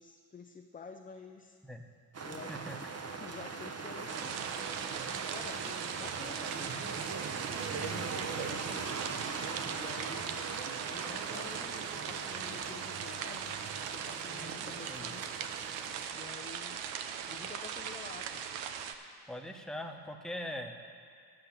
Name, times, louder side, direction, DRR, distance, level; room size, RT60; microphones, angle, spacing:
voice 1, 0.0-1.6 2.2-4.4 5.3-5.7 6.0-7.0 7.7-9.3 9.7-10.6 10.9-13.5 13.9-15.3 16.1-16.8 17.3-18.4, left 5 dB, 20° left, 4 dB, 0.6 m, -50 dB
sound 1, 2.1-16.1, right 4 dB, 30° right, 1.0 m, -40 dB
sound 2, 4.1-18.9, right 8 dB, 70° right, 0.8 m, -40 dB
voice 2, 7.7-8.1 14.3-15.1 19.3-20.7, equal, ahead, 3 dB, 1.2 m, -42 dB
11.5 x 6.7 x 7.4 m, 2.2 s
hypercardioid pair, 55°, 47 cm